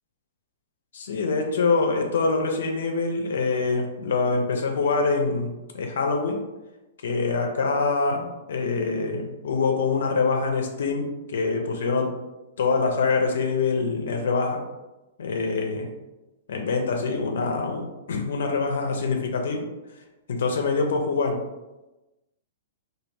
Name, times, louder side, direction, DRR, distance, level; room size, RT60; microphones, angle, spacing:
voice 1, 0.9-6.4 7.0-12.1 12.6-14.6 15.2-15.9 16.5-19.7 20.3-21.4, left 4 dB, 65° left, 3 dB, 0.4 m, -25 dB
2.2 x 2.1 x 3.2 m, 1.0 s
figure-of-eight pair, 110°, 0 cm